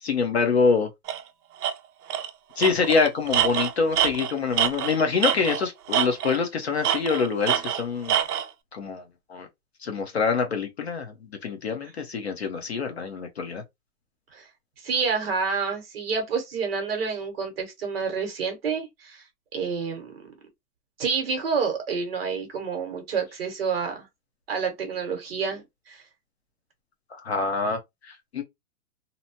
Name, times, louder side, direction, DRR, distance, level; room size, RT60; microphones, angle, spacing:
voice 1, 0.0-0.9 2.6-8.1 8.7-9.0 9.3-9.5 9.8-13.6 27.2-28.4, left 5 dB, 45° left, 0.5 m, -25 dB
Tools, 1.1-1.2 1.6-1.7 2.1-2.3 2.6-5.6 5.9-6.5 6.8-8.5, right 10 dB, 85° right, 0.6 m, -25 dB
voice 2, 14.8-19.2 19.5-20.3 21.0-24.1 24.5-26.0, right 5 dB, 40° right, 0.9 m, -28 dB
2.7 x 2.2 x 2.6 m
hypercardioid pair, 180°, 45 cm